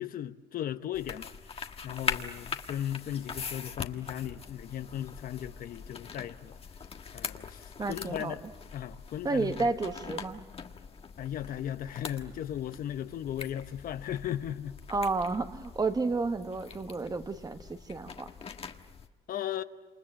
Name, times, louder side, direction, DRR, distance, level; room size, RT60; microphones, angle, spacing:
voice 1, 0.0-6.5 7.1-8.4 8.7-9.7 11.2-14.8 19.3-19.6, left 11 dB, 60° left, 1.0 m, -37 dB
sound 1, 0.9-19.1, left 6 dB, 35° left, 1.5 m, -42 dB
voice 2, 7.8-8.3 9.2-10.4 14.9-18.3, right 3 dB, 20° right, 1.3 m, -31 dB
28.0 x 28.0 x 7.5 m
cardioid pair, 110°, 17 cm